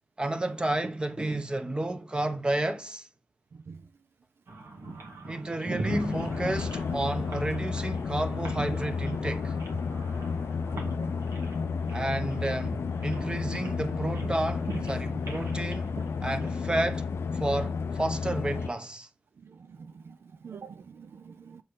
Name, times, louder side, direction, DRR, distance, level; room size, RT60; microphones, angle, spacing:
voice 1, 0.2-3.1 5.3-9.6 11.9-15.9 16.2-17.1 17.3-19.1, right 1 dB, 20° right, 1.0 m, -31 dB
voice 2, 3.5-3.8 4.9-5.0 5.8-6.0 10.7-11.1 13.9-14.0 15.1-15.2 19.4-21.6, right 6 dB, 65° right, 0.3 m, -47 dB
sound 1, 4.5-16.8, right 2 dB, 85° right, 2.1 m, -41 dB
sound 2, 5.9-18.7, left 5 dB, 70° left, 0.4 m, -32 dB
7.5 x 4.3 x 3.6 m
wide cardioid pair, 90°, 4 cm